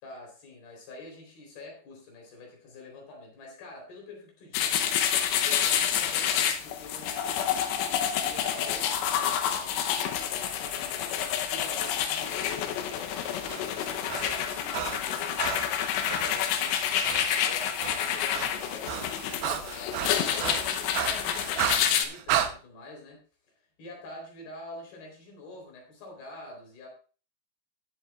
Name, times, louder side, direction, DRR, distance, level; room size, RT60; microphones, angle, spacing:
voice 1, 0.0-13.4 14.0-17.0 17.4-23.2 23.8-26.9, left 3 dB, 60° left, 0 dB, 5.5 m, -46 dB
sound 1, 4.5-22.1, left 9 dB, 80° left, 3.0 m, -28 dB
Breathing, 13.2-16.4 17.0-17.3 17.6-22.5, right 10 dB, 75° right, 2.4 m, -33 dB
18.0 x 7.7 x 2.4 m, 0.37 s
omnidirectional pair, 5.0 m